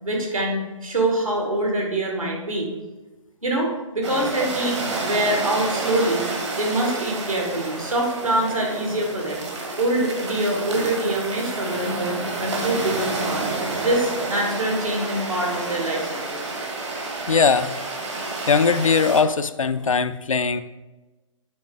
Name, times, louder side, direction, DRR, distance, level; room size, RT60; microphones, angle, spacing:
voice 1, 0.0-2.7 3.4-6.3 6.6-9.5 9.8-16.4, right 1 dB, 80° right, -1 dB, 2.1 m, -25 dB
sound 1, 4.0-19.2, right 3 dB, 55° right, 1.5 m, -29 dB
voice 2, 17.3-17.8 18.5-20.6, left 5 dB, 75° left, 12 dB, 0.5 m, -20 dB
7.5 x 4.5 x 3.8 m, 1.1 s
figure-of-eight pair, 130°, 17 cm